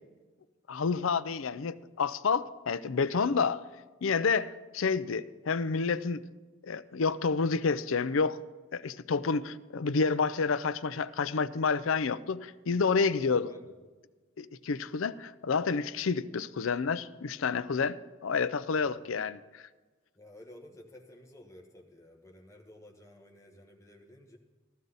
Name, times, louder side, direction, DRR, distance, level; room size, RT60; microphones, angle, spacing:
voice 1, 0.7-3.6 4.0-6.2 6.6-8.4 8.7-13.5 14.4-19.6, left 5 dB, 85° left, 0.5 m, -29 dB
voice 2, 20.1-24.4, left 1 dB, 15° left, 1.3 m, -53 dB
15.0 x 13.0 x 4.0 m
head